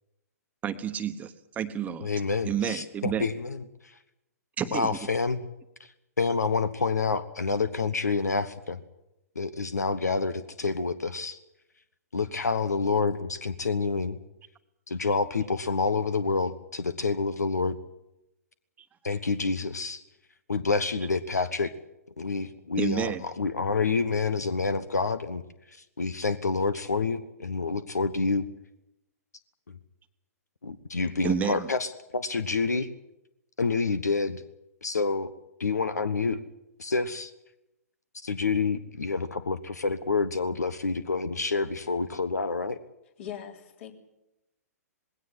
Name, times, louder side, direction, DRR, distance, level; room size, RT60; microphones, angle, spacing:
voice 1, 0.6-2.1 2.4-3.3 4.6-5.0 18.8-18.9 22.8-23.2 31.2-31.7, right 8 dB, 15° right, 9 dB, 1.2 m, -30 dB
voice 2, 2.0-3.9 4.7-5.4 6.2-8.8 9.3-11.4 12.1-14.2 14.9-17.8 19.0-20.0 20.5-21.7 22.2-25.4 26.0-28.4 29.7-29.8 30.6-32.9 33.6-34.4 34.8-35.3 35.6-36.4 36.8-37.3 38.2-42.8, left 4 dB, 80° left, 14 dB, 1.2 m, -28 dB
voice 3, 43.2-43.9, left 9 dB, 50° left, 4 dB, 3.7 m, -40 dB
20.0 x 17.0 x 9.9 m, 0.89 s
figure-of-eight pair, 120°, 9 cm